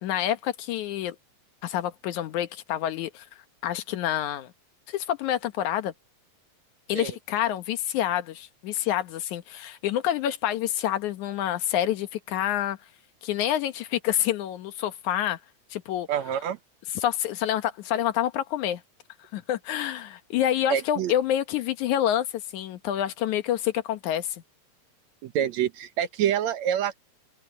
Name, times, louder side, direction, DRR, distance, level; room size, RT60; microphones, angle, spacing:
voice 1, 0.0-1.2 1.6-3.2 3.6-4.5 4.9-5.9 6.9-12.8 13.2-15.4 15.7-16.1 16.9-18.8 19.3-22.3 22.5-24.4, left 11 dB, 80° left, 2.5 m, -27 dB
voice 2, 16.1-16.6 20.7-21.1 25.2-27.0, right 10 dB, 70° right, 2.2 m, -26 dB
open air
omnidirectional pair, 3.4 m